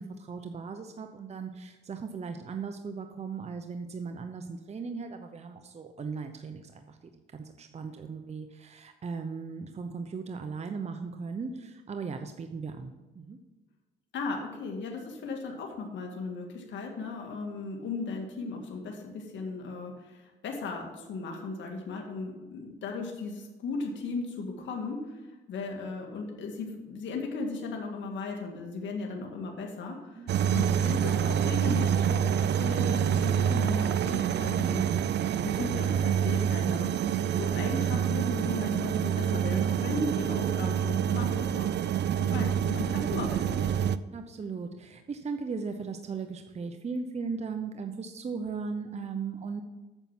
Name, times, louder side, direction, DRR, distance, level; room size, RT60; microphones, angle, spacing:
voice 1, 0.0-7.0 7.3-13.4 30.1-30.6 44.1-49.6, right 5 dB, 35° right, 7 dB, 0.8 m, -37 dB
voice 2, 14.1-25.2 25.5-36.9 37.3-41.7 42.2-43.7, left 3 dB, 70° left, 1 dB, 1.9 m, -36 dB
sound 1, 30.3-44.0, right 9 dB, 60° right, 0.5 m, -27 dB
9.0 x 6.9 x 6.0 m, 1.2 s
cardioid pair, 90°, 20 cm